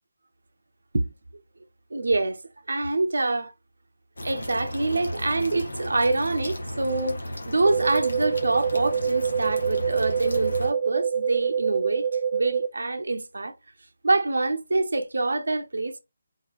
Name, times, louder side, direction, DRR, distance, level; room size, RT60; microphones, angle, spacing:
voice 1, 1.9-2.4 2.7-3.5 4.2-12.1 12.3-13.5 14.0-16.0, right 2 dB, 80° right, 0.7 m, -26 dB
sound 1, 4.2-10.7, equal, 85° left, 1.2 m, -35 dB
sound 2, 7.7-12.7, right 7 dB, 35° right, 0.4 m, -26 dB
4.4 x 3.0 x 2.3 m
figure-of-eight pair, 165°, 0 cm